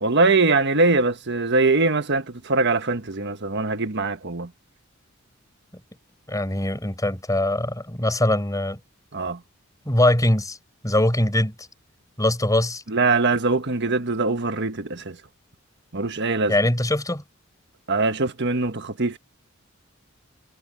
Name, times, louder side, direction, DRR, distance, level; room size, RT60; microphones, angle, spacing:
voice 1, 0.0-4.5 9.1-9.4 12.9-15.2 15.9-16.5 17.9-19.2, right 3 dB, 60° right, 1.5 m, -22 dB
voice 2, 6.3-8.8 9.9-10.6 10.8-11.5 12.2-12.8 16.5-17.2, left 1 dB, 15° left, 5.6 m, -22 dB
head